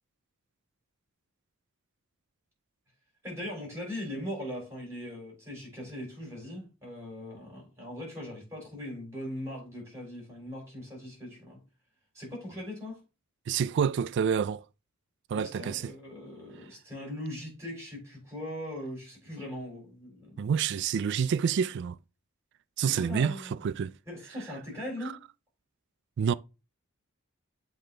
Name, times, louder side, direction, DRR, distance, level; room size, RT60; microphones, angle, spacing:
voice 1, 3.2-11.6 12.1-13.0 15.3-20.4 22.9-23.6 24.1-25.2, left 1 dB, 15° right, 3.9 m, -40 dB
voice 2, 13.5-14.6 15.3-15.9 20.4-22.0 22.8-23.4 23.6-23.9 26.2-26.3, right 7 dB, 55° right, 0.3 m, -28 dB
7.7 x 3.3 x 3.8 m
head